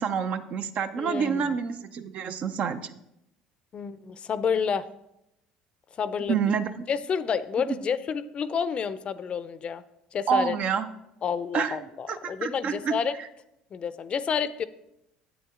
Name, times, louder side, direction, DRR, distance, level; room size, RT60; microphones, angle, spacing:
voice 1, 0.0-2.9 6.3-6.9 7.6-7.8 10.3-10.9 11.5-12.9 13.2-13.3, right 6 dB, 55° right, 10 dB, 0.6 m, -28 dB
voice 2, 1.0-1.5 3.7-4.9 6.0-6.4 6.9-9.8 10.1-10.5 11.2-13.1 13.7-14.6, left 6 dB, 45° left, 15 dB, 0.5 m, -29 dB
8.2 x 7.1 x 3.6 m, 0.84 s
hypercardioid pair, 70°, 3 cm